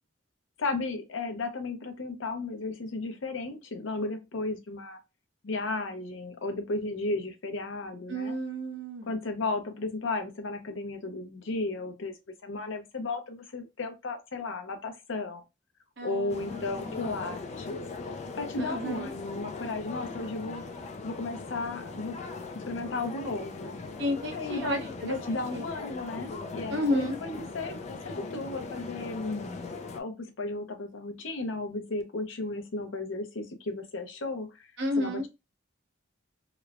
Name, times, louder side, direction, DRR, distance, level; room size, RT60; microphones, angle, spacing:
voice 1, 0.6-5.0 5.4-8.4 9.1-12.2 12.4-15.4 16.0-17.8 18.3-20.6 21.0-22.2 22.5-23.8 24.3-27.8 28.0-29.5 29.9-34.7 35.0-35.3, left 3 dB, 75° left, 0.6 m, -34 dB
voice 2, 8.1-9.1 16.0-17.1 18.6-19.1 24.0-25.6 26.7-27.2 34.8-35.3, left 1 dB, 65° right, 0.8 m, -32 dB
sound 1, 16.3-30.0, left 3 dB, 35° left, 0.3 m, -39 dB
3.0 x 2.1 x 2.4 m
head